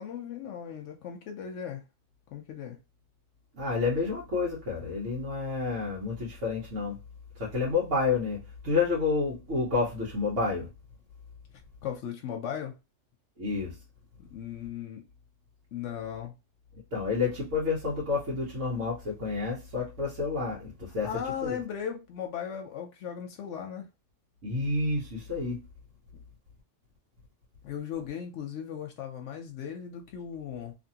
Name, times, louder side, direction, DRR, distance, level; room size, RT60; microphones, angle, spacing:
voice 1, 0.0-1.8 2.3-2.8 11.8-12.8 14.2-15.0 15.7-16.3 21.0-23.9 27.6-30.7, left 8 dB, 80° left, 0.9 m, -37 dB
voice 2, 3.5-7.0 7.4-8.4 8.6-10.7 13.4-13.7 16.9-21.1 21.4-21.6 24.4-25.6, left 4 dB, 80° right, 1.3 m, -29 dB
2.8 x 2.6 x 2.7 m
omnidirectional pair, 1.2 m